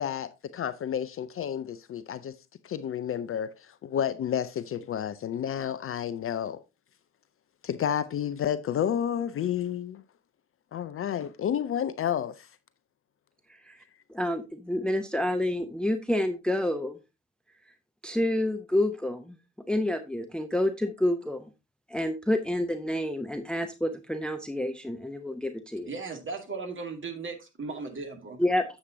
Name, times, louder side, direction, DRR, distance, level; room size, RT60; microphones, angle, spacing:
voice 1, 0.0-2.4 2.6-6.6 7.6-10.0 10.7-12.5, left 9 dB, 40° left, 0.6 m, -30 dB
voice 2, 14.1-17.0 18.0-19.4 19.7-21.5 21.9-25.9 28.4-28.6, left 1 dB, 5° left, 0.8 m, -28 dB
voice 3, 25.8-28.4, right 4 dB, 35° right, 2.3 m, -37 dB
9.6 x 7.5 x 2.7 m
figure-of-eight pair, 40°, 34 cm